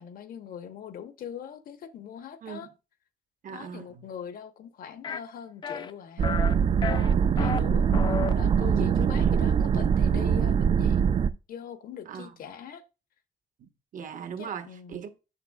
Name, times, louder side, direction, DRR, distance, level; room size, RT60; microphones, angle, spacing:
voice 1, 0.0-2.7 3.5-6.3 6.9-7.9 8.3-11.2 11.5-12.8 14.4-15.0, left 8 dB, 75° left, 1.0 m, -41 dB
voice 2, 3.4-4.0 8.6-9.3 12.1-12.3 13.6-15.2, right 7 dB, 60° right, 1.0 m, -39 dB
sound 1, 5.0-5.2 5.6-5.9 6.2-6.5 6.8-7.6 7.9-8.3, left 6 dB, 30° left, 0.4 m, -31 dB
sound 2, 6.2-11.3, right 7 dB, 40° right, 0.4 m, -23 dB
7.1 x 6.8 x 2.3 m
cardioid pair, 130°, 15 cm